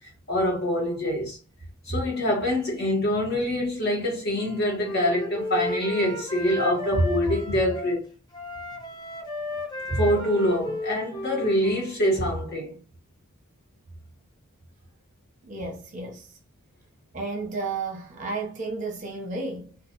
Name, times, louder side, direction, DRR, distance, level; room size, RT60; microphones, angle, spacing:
voice 1, 0.3-1.4 1.9-8.1 9.9-12.8, equal, 45° left, 1.2 m, -25 dB
Wind instrument woodwind instrument, 4.3-8.0 8.3-12.0, left 1 dB, 20° left, 0.5 m, -34 dB
voice 2, 15.4-16.4 17.1-19.8, right 3 dB, 35° right, 0.7 m, -33 dB
2.3 x 2.3 x 2.7 m
head